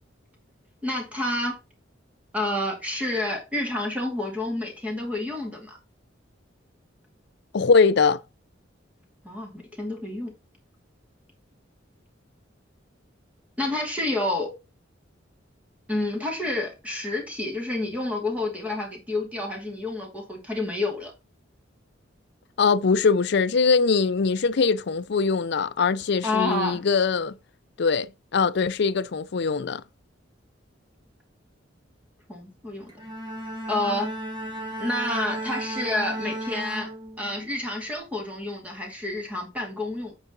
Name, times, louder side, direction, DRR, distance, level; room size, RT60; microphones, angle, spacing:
voice 1, 0.8-1.6 2.3-5.8 9.2-10.3 13.6-14.5 15.9-21.1 26.2-26.8 32.3-32.9 33.7-34.1 34.8-36.9 37.2-40.1, left 2 dB, 5° right, 2.5 m, -29 dB
voice 2, 7.5-8.2 22.6-27.3 27.8-29.8, left 5 dB, 60° left, 0.5 m, -22 dB
Bowed string instrument, 32.9-37.6, right 1 dB, 25° right, 2.1 m, -34 dB
8.1 x 4.9 x 3.9 m
head